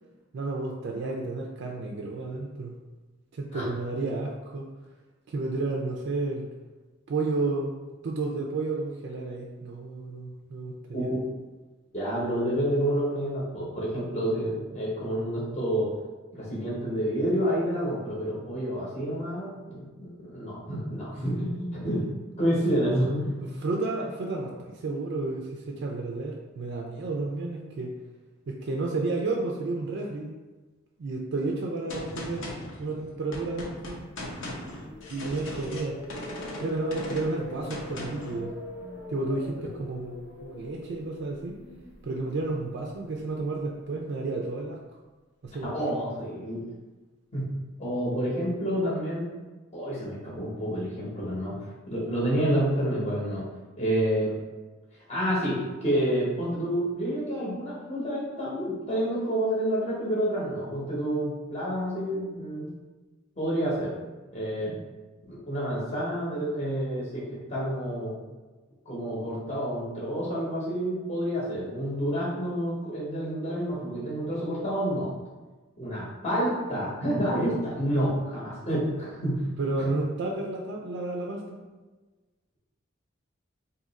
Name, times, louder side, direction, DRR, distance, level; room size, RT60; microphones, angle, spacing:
voice 1, 0.3-2.7 3.4-4.7 5.3-6.5 7.1-7.7 8.0-11.1 23.6-27.9 28.5-30.3 31.0-32.4 32.8-34.0 35.1-36.0 36.6-38.5 39.1-41.6 42.0-44.8 45.4-45.7 79.6-81.6, right 3 dB, 60° right, 0 dB, 0.4 m, -31 dB
voice 2, 11.9-15.9 16.4-22.1 22.4-23.4 45.6-46.6 47.3-47.5 47.8-49.4 49.7-51.5 51.9-53.5 53.8-54.3 55.1-62.7 63.4-63.9 64.3-64.8 65.3-68.2 68.9-75.1 75.8-79.5 79.8-79.9, equal, 35° left, -6 dB, 0.8 m, -29 dB
Gunshot gunfire, 31.9-38.4, left 1 dB, 75° left, 0.7 m, -39 dB
sound 1, 33.8-43.9, left 1 dB, 90° left, 1.2 m, -43 dB
2.7 x 2.4 x 3.9 m, 1.2 s
head